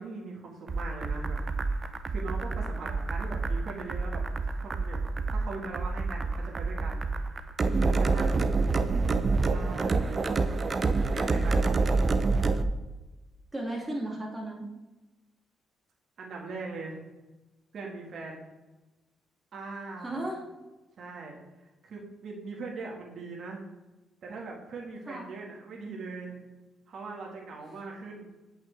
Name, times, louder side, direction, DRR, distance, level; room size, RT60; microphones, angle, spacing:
voice 1, 0.0-1.4 1.7-1.8 2.1-5.0 5.3-7.1 7.8-8.4 9.5-10.4 11.1-11.9 16.2-17.0 17.7-18.5 19.5-20.2 21.0-21.4 21.8-23.6 24.2-26.4 26.9-28.3, right 3 dB, 55° right, -2 dB, 1.6 m, -40 dB
sound 1, 0.7-12.6, right 3 dB, 35° right, 0.5 m, -27 dB
voice 2, 8.9-9.3 13.5-14.7 20.0-20.4 25.1-25.2, right 1 dB, 15° right, -1 dB, 2.2 m, -35 dB
8.0 x 5.7 x 3.3 m, 1.1 s
cardioid pair, 90°, 0 cm